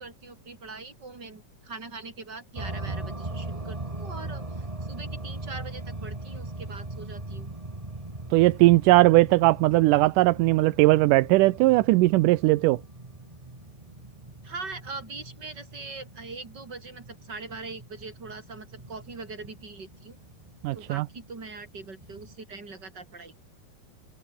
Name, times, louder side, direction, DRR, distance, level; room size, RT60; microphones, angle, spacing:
voice 1, 0.0-7.5 14.4-20.2 20.7-23.3, right 3 dB, 30° right, 5.2 m, -42 dB
sound 1, 2.6-22.4, right 2 dB, 10° right, 1.9 m, -40 dB
voice 2, 8.3-12.8 20.6-21.1, right 19 dB, 80° right, 2.0 m, -19 dB
omnidirectional pair, 4.1 m